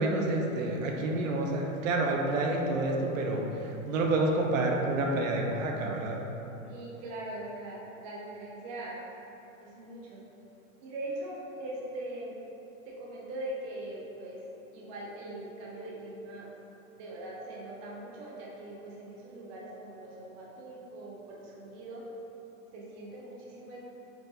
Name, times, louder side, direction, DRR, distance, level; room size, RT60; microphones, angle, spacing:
voice 1, 0.0-6.2, right 2 dB, 70° right, 1 dB, 0.7 m, -29 dB
voice 2, 6.6-9.0 9.6-10.2 10.8-12.3 12.9-14.4 14.7-16.5 17.0-22.0 22.7-23.9, right 1 dB, 25° right, -4 dB, 0.5 m, -41 dB
4.6 x 2.5 x 3.9 m, 3.0 s
supercardioid pair, 150°, 41 cm